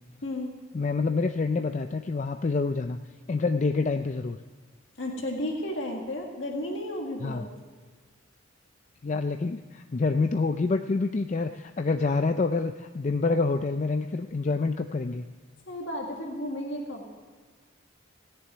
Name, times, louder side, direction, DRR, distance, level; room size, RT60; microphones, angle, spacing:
voice 1, 0.7-3.0 3.3-4.4 7.2-7.4 9.0-15.3, left 3 dB, 35° left, 7 dB, 0.4 m, -27 dB
voice 2, 5.0-7.5 15.7-17.0, left 1 dB, 65° left, 0 dB, 1.8 m, -33 dB
17.0 x 6.9 x 9.2 m, 1.4 s
head